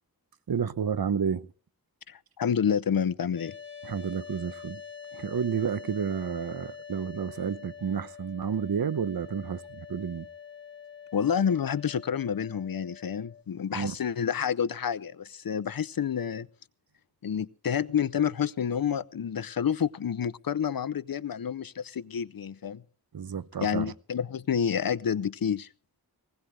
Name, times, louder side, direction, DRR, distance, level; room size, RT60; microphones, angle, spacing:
voice 1, 0.5-1.5 3.8-4.8 5.1-10.3 13.7-14.0 23.1-23.9, right 7 dB, 70° right, 0.9 m, -31 dB
voice 2, 2.1-3.5 11.1-16.5 17.2-22.8 23.6-25.7, left 8 dB, 65° left, 0.7 m, -29 dB
sound 1, 3.3-13.4, left 7 dB, 30° left, 2.0 m, -45 dB
19.5 x 17.0 x 3.3 m
wide cardioid pair, 85°, 38 cm